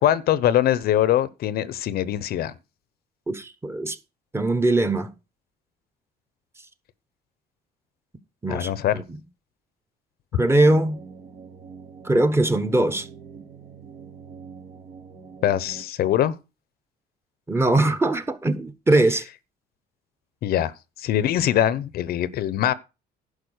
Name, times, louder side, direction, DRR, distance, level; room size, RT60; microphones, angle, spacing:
voice 1, 0.0-2.5 8.5-9.0 15.4-16.4 20.4-22.7, left 11 dB, 65° left, 0.8 m, -22 dB
voice 2, 3.3-4.0 4.3-5.1 8.4-9.0 10.3-11.0 12.0-13.1 17.5-19.2, right 2 dB, 15° right, 1.1 m, -21 dB
sound 1, 10.6-15.8, right 6 dB, 65° right, 2.4 m, -43 dB
11.5 x 4.8 x 6.4 m
cardioid pair, 110°, 17 cm